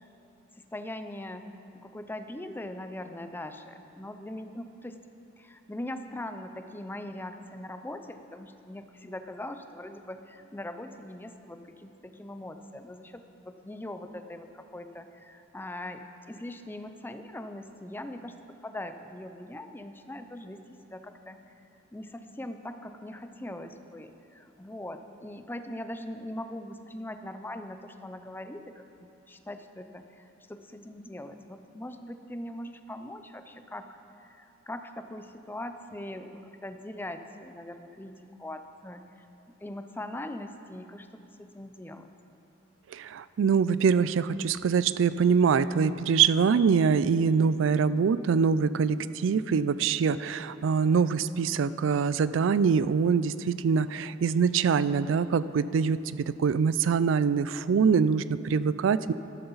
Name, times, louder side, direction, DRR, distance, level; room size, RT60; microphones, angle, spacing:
voice 1, 0.6-1.5 1.7-5.0 5.4-18.3 18.6-20.6 20.9-21.4 21.9-39.0 39.6-41.1 41.4-42.1, left 1 dB, 10° left, 8 dB, 0.5 m, -41 dB
voice 2, 42.9-59.1, right 6 dB, 75° right, 15 dB, 0.4 m, -24 dB
13.0 x 12.5 x 4.0 m, 2.8 s
head